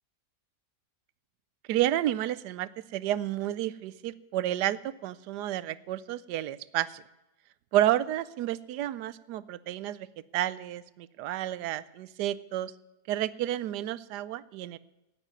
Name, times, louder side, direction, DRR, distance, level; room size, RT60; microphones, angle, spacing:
voice 1, 1.7-7.0 7.7-10.1 10.3-12.7 13.1-14.8, right 13 dB, 80° right, 18 dB, 1.2 m, -30 dB
9.2 x 9.1 x 9.4 m, 1.0 s
omnidirectional pair, 1.8 m